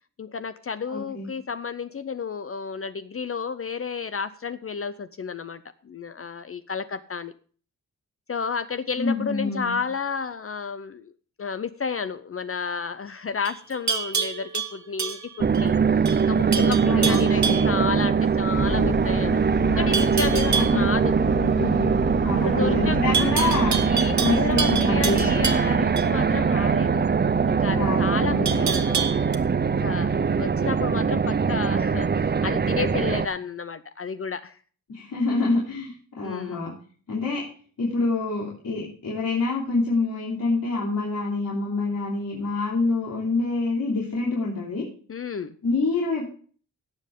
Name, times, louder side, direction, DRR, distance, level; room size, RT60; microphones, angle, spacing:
voice 1, 0.2-7.3 8.3-11.1 11.4-19.4 19.8-21.2 22.4-23.3 23.9-27.1 27.5-29.4 29.8-34.6 36.2-36.7 45.1-45.5, left 5 dB, 40° left, 12 dB, 0.5 m, -31 dB
voice 2, 0.9-1.3 9.0-9.8 16.9-17.7 19.6-19.9 20.5-20.9 21.4-23.8 24.2-25.4 27.7-28.6 34.9-36.7 37.1-37.4 37.8-44.9 45.6-46.3, left 3 dB, 70° left, -5 dB, 3.1 m, -27 dB
Livestock farm animals working animals, 13.4-15.7 16.1-16.3 16.5-17.8 19.9-20.8 23.1-26.1 28.5-29.4, right 6 dB, 55° right, 1.1 m, -28 dB
sound 1, 15.4-33.3, right 6 dB, 30° right, 0.5 m, -22 dB
sound 2, 18.5-26.9, left 2 dB, ahead, 1.1 m, -33 dB
17.5 x 7.5 x 3.6 m, 0.43 s
wide cardioid pair, 150°, 33 cm